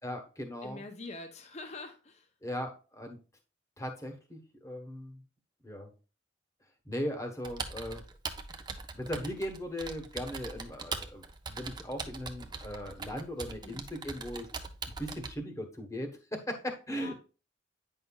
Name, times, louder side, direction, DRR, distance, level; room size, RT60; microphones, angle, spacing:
voice 1, 0.0-0.8 2.4-3.2 3.8-5.2 5.6-5.9 6.8-8.0 8.9-14.5 15.0-17.1, equal, 15° left, 4 dB, 1.1 m, -38 dB
voice 2, 0.6-2.3 13.6-13.8 16.9-17.1, left 2 dB, 35° left, 5 dB, 0.8 m, -45 dB
Computer keyboard, 7.4-15.3, right 4 dB, 25° right, 0.5 m, -41 dB
9.1 x 5.6 x 2.3 m, 0.33 s
head